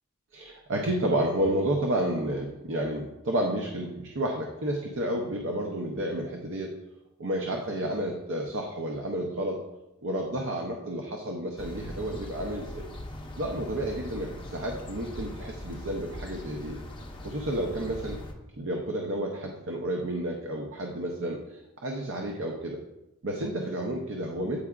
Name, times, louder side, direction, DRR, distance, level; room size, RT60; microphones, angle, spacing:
voice 1, 0.3-6.7 7.2-9.6 10.0-12.9 13.4-16.8 17.2-18.2 18.6-22.8 23.2-24.6, right 1 dB, 55° right, 1 dB, 0.6 m, -31 dB
sound 1, 11.6-18.3, left 1 dB, 20° left, 0.6 m, -41 dB
8.5 x 4.7 x 2.3 m, 0.95 s
head